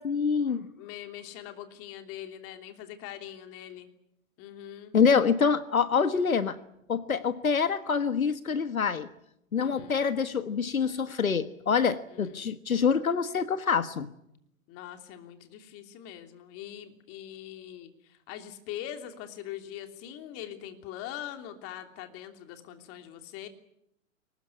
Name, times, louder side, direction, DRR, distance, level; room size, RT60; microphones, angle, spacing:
voice 1, 0.0-0.7 4.9-6.6 6.9-9.1 9.5-14.1, left 6 dB, 90° left, 13 dB, 1.5 m, -26 dB
voice 2, 0.8-3.9 4.4-5.0 9.6-10.0 12.1-12.5 14.7-23.5, left 11 dB, 35° left, 7 dB, 3.1 m, -42 dB
23.5 x 19.5 x 9.8 m, 0.79 s
hypercardioid pair, 120°, 41 cm